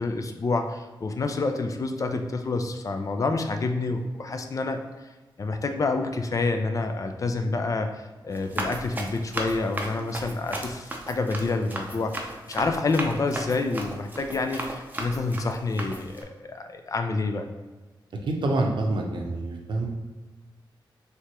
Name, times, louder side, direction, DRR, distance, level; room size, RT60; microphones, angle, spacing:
voice 1, 0.0-4.8 5.4-17.5, left 3 dB, 40° left, 6 dB, 0.4 m, -28 dB
Run, 8.3-16.2, right 1 dB, 20° right, 0.6 m, -35 dB
voice 2, 18.2-19.9, right 2 dB, 70° right, 1 dB, 0.7 m, -26 dB
4.7 x 3.3 x 2.9 m, 1.2 s
wide cardioid pair, 155°, 8 cm